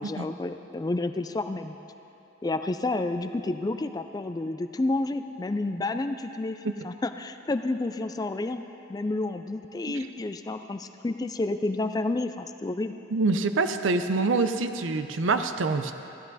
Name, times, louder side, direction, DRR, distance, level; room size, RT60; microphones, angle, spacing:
voice 1, 0.0-1.8 2.4-8.6 8.9-12.9, left 2 dB, 20° left, 9 dB, 0.3 m, -30 dB
voice 2, 13.1-15.9, right 3 dB, 85° right, 9 dB, 0.6 m, -26 dB
15.0 x 11.0 x 4.1 m, 2.9 s
head